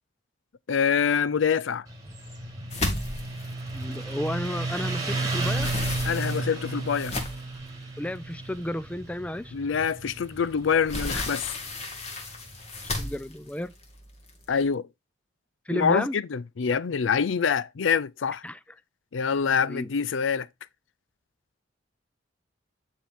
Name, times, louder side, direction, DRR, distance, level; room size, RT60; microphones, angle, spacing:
voice 1, 0.7-1.9 6.0-7.2 9.5-11.5 14.5-14.9 15.7-18.4 19.1-20.5, left 6 dB, 85° left, 0.5 m, -25 dB
Motorcycle, 1.9-13.0, right 2 dB, 20° right, 1.6 m, -33 dB
sound 1, 2.7-4.9 5.2-7.6 8.3-8.4 8.8-8.9 10.3-14.6, left 2 dB, 35° left, 1.8 m, -34 dB
voice 2, 3.7-5.7 8.0-9.5 12.8-13.7 15.7-16.2 18.4-18.6 19.6-19.9, left 1 dB, 5° left, 0.3 m, -32 dB
9.7 x 4.5 x 3.6 m
head